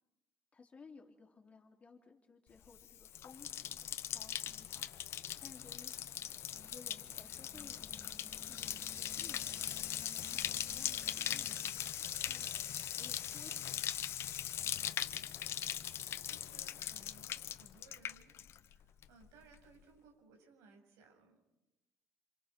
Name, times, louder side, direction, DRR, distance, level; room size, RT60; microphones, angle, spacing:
voice 1, 0.5-5.9 6.5-14.0 14.5-15.5, left 4 dB, 25° left, 2 dB, 3.7 m, -59 dB
Bathtub (filling or washing), 2.7-18.8 19.0-19.6, left 10 dB, 55° left, 0.8 m, -40 dB
sound 1, 6.2-16.6, left 1 dB, ahead, 3.1 m, -61 dB
sound 2, 6.2-13.6, right 5 dB, 55° right, 3.7 m, -65 dB
voice 2, 15.2-21.5, right 4 dB, 85° right, 3 dB, 7.2 m, -64 dB
28.0 x 27.0 x 6.1 m, 0.96 s
cardioid pair, 125°, 5 cm